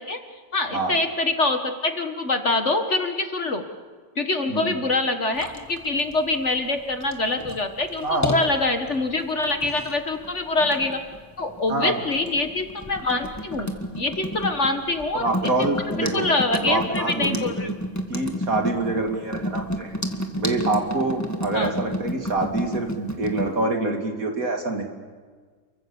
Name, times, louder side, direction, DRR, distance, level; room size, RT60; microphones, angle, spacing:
voice 1, 0.5-3.6 4.2-11.0 11.4-15.3 15.6-17.8 21.5-21.7, left 2 dB, 45° left, 6 dB, 1.7 m, -25 dB
sound 1, 5.4-23.5, equal, 10° left, 1.8 m, -31 dB
voice 2, 8.0-8.3 11.7-12.0 15.1-17.5 18.1-20.0 20.4-24.8, right 2 dB, 50° right, 3 dB, 3.0 m, -26 dB
30.0 x 23.5 x 7.2 m, 1.5 s
omnidirectional pair, 1.9 m